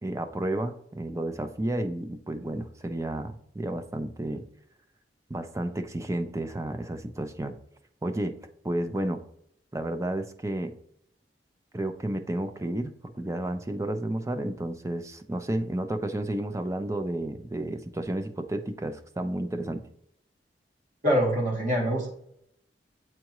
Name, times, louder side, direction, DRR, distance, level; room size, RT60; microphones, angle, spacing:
voice 1, 0.0-4.4 5.3-7.5 8.0-8.3 8.6-9.2 9.7-10.7 11.7-19.8, right 1 dB, 15° right, 8 dB, 0.5 m, -31 dB
voice 2, 21.0-22.1, equal, 50° right, -3 dB, 2.5 m, -24 dB
7.6 x 4.6 x 3.0 m, 0.69 s
head